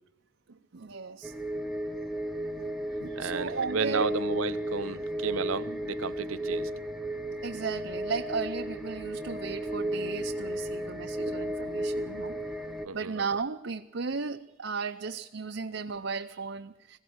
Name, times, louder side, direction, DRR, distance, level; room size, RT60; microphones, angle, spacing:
voice 1, 0.7-1.3 3.0-4.1 5.7-5.8 7.4-12.3 12.9-17.0, right 5 dB, 60° right, 0.6 m, -35 dB
sound 1, 1.2-12.9, equal, ahead, 1.0 m, -34 dB
voice 2, 3.2-6.7 11.3-11.4 12.8-13.1, right 5 dB, 90° right, 0.8 m, -33 dB
20.5 x 16.5 x 7.9 m
head